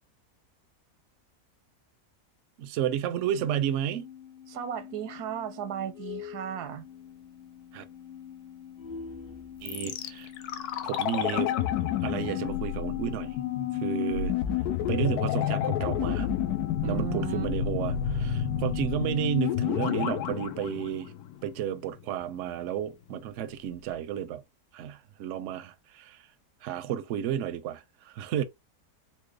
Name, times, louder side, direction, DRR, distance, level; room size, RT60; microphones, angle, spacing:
voice 1, 2.6-4.1 7.7-7.8 9.6-10.3 10.8-11.5 12.0-13.4 13.7-14.4 14.9-16.3 16.8-21.1 21.4-24.4 24.7-26.2 26.6-28.4, right 10 dB, 65° right, 0.7 m, -32 dB
sound 1, 3.2-14.4, left 8 dB, 55° left, 0.7 m, -45 dB
voice 2, 4.5-6.9 16.8-17.5, right 10 dB, 85° right, 1.2 m, -35 dB
sound 2, 9.7-21.7 21.9-22.0, left 10 dB, 80° left, 1.1 m, -29 dB
4.3 x 2.1 x 3.2 m
omnidirectional pair, 1.7 m